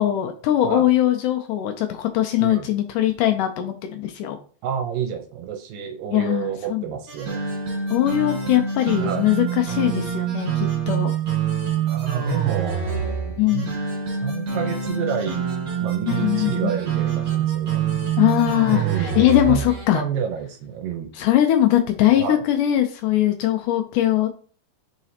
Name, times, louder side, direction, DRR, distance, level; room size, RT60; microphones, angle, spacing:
voice 1, 0.0-4.4 6.1-6.9 7.9-11.1 13.4-13.7 16.1-16.8 18.2-20.0 21.2-24.3, left 13 dB, 80° left, 6 dB, 1.9 m, -21 dB
voice 2, 4.6-7.4 9.0-9.3 11.9-13.8 14.1-15.5 15.8-18.1 18.7-19.6 19.9-21.1 22.2-22.4, right 8 dB, 75° right, 4 dB, 2.3 m, -29 dB
sound 1, 7.1-19.9, right 7 dB, 45° right, 1.6 m, -26 dB
7.3 x 4.8 x 2.8 m, 0.42 s
omnidirectional pair, 4.3 m